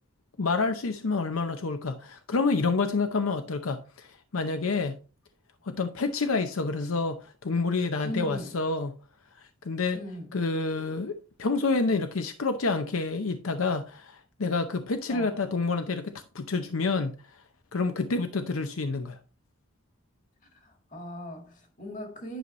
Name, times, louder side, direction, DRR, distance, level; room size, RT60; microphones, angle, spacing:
voice 1, 0.4-5.0 5.6-8.9 9.4-10.0 10.3-17.2 17.7-19.2, left 3 dB, 80° left, 0.7 m, -28 dB
voice 2, 8.0-8.6 9.9-10.3 15.1-15.4 20.5-22.4, equal, 35° left, 1.8 m, -39 dB
10.0 x 5.4 x 3.1 m
head